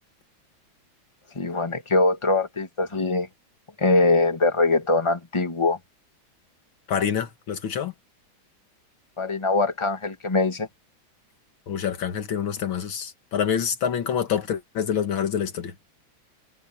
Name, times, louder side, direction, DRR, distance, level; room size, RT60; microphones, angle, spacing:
voice 1, 1.3-3.3 3.8-5.8 9.2-10.7, left 2 dB, 15° left, 2.2 m, -22 dB
voice 2, 6.9-7.9 11.7-15.7, left 8 dB, 80° left, 2.5 m, -26 dB
omnidirectional pair, 2.2 m